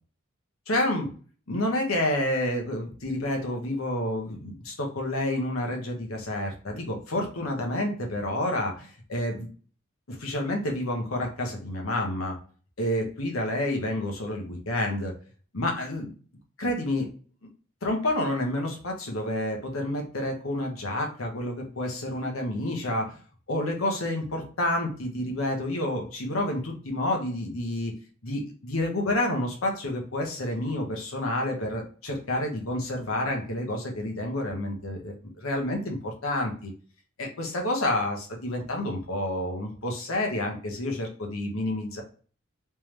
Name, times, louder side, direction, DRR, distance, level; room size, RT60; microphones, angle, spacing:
voice 1, 0.7-1.1 1.5-9.5 10.1-12.4 12.8-15.1 15.5-16.1 16.6-17.1 17.8-23.2 23.5-27.9 28.2-36.7 37.2-42.0, left 1 dB, 85° left, 2 dB, 1.0 m, -29 dB
3.4 x 3.3 x 3.1 m, 0.41 s
head